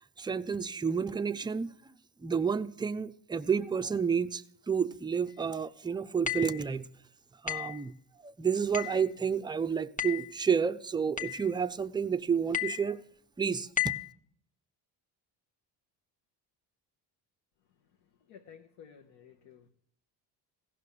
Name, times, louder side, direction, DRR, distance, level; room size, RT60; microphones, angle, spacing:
voice 1, 0.2-1.9 2.2-6.9 7.4-8.0 8.2-13.0 13.4-13.9, right 6 dB, 10° right, 0.4 m, -30 dB
sound 1, 6.3-6.6 7.5-7.8 8.7-9.0 10.0-10.3 11.2-11.5 12.5-12.9 13.8-14.1, left 10 dB, 15° left, 0.8 m, -33 dB
voice 2, 18.3-19.7, left 7 dB, 70° left, 1.0 m, -53 dB
15.0 x 6.0 x 6.6 m
supercardioid pair, 65°, 44 cm